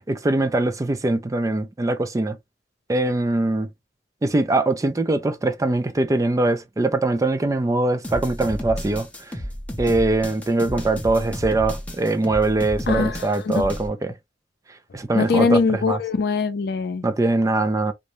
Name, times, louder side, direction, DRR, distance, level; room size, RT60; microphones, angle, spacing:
voice 1, 0.0-2.4 2.9-3.7 4.2-9.4 9.8-14.1 14.9-16.0 17.0-17.9, right 2 dB, 20° right, 0.3 m, -22 dB
sound 1, 8.0-13.9, equal, 10° left, 0.7 m, -32 dB
voice 2, 12.9-13.7 15.1-17.0, left 4 dB, 60° left, 0.4 m, -22 dB
2.5 x 2.1 x 2.9 m
head